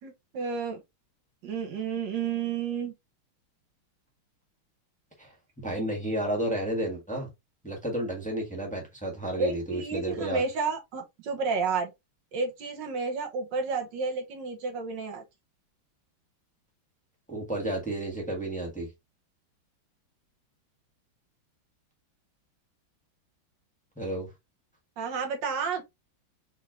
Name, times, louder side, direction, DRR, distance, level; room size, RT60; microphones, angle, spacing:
voice 1, 0.0-0.8 1.4-2.9 9.4-11.9 12.3-15.2 25.0-25.8, right 5 dB, 65° right, 1.6 m, -31 dB
voice 2, 5.6-7.3 7.6-10.4 17.3-18.9 24.0-24.3, right 1 dB, 5° left, 1.1 m, -31 dB
4.6 x 3.3 x 2.4 m
omnidirectional pair, 2.3 m